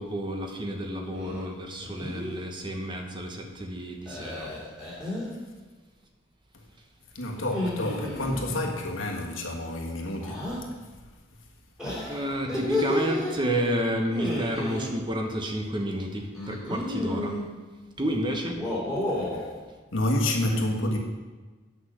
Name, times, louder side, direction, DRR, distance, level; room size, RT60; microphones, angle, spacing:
voice 1, 0.0-4.5 5.0-5.1 12.1-17.4 18.0-18.6, equal, 25° right, 0.9 m, -30 dB
sound 1, 1.1-1.5 1.8-2.3 4.1-5.3 7.4-8.8 10.2-10.6 11.8-13.3 14.1-14.9 16.3-17.4 18.4-19.4, left 1 dB, 5° right, 3.0 m, -31 dB
voice 2, 7.1-10.6 19.2-19.5 19.9-21.0, left 1 dB, 80° left, 1.6 m, -29 dB
9.0 x 5.8 x 6.5 m
head